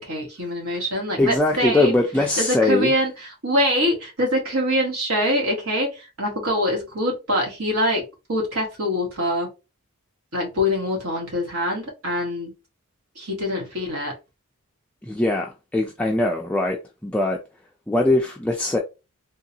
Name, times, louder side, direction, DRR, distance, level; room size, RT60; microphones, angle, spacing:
voice 1, 0.0-1.9 2.4-3.1 3.4-9.5 10.3-12.5 13.2-14.1, equal, 65° right, 1.6 m, -24 dB
voice 2, 1.2-2.9 15.0-17.4 17.9-18.8, left 2 dB, 5° left, 0.3 m, -21 dB
3.8 x 2.3 x 2.7 m
head